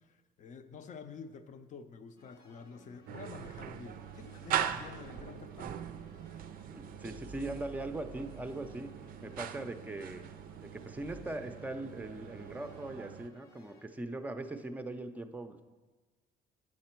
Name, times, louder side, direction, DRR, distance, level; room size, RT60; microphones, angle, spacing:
voice 1, 0.0-6.2, left 5 dB, 45° left, 10 dB, 0.6 m, -49 dB
sound 1, 2.2-13.9, left 2 dB, 90° left, 1.4 m, -61 dB
sound 2, 3.1-13.3, right 9 dB, 55° right, 0.4 m, -41 dB
voice 2, 6.7-8.9 9.2-10.2 10.6-15.6, right 2 dB, 10° right, 8 dB, 0.5 m, -40 dB
8.5 x 7.4 x 4.5 m, 1.3 s
cardioid pair, 110°, 17 cm